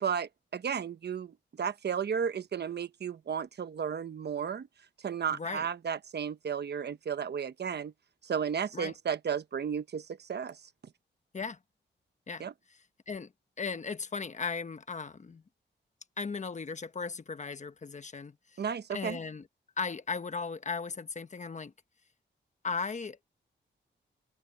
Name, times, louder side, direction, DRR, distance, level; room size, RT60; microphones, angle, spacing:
voice 1, 0.0-4.7 5.0-7.9 8.2-10.6 12.4-12.5 18.6-19.2, right 7 dB, 60° right, 1.0 m, -33 dB
voice 2, 5.3-5.6 8.7-8.9 11.3-11.6 12.3-12.5 13.1-13.3 13.6-15.4 16.2-18.6 18.9-19.5 19.8-21.7 22.6-23.2, left 5 dB, 40° left, 1.2 m, -37 dB
wide cardioid pair, 110°, 19 cm